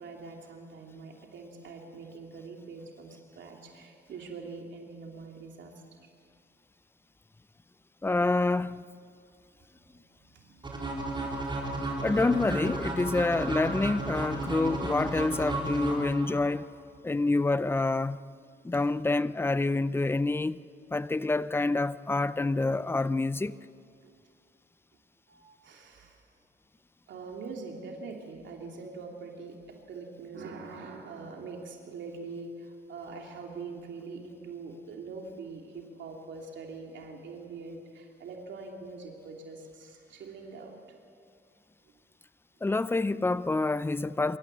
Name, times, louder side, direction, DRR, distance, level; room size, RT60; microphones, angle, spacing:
voice 1, 0.0-5.8 8.3-8.4 10.2-12.1 24.0-24.2 25.3-26.2 27.1-40.7, right 4 dB, 70° right, 2.9 m, -44 dB
voice 2, 8.0-9.0 12.0-16.7 17.0-18.2 18.6-20.6 20.9-23.6 42.6-44.4, left 2 dB, 10° left, 0.5 m, -27 dB
sound 1, 10.6-16.6, right 2 dB, 25° right, 4.6 m, -33 dB
25.5 x 13.5 x 7.6 m
cardioid pair, 90°, 20 cm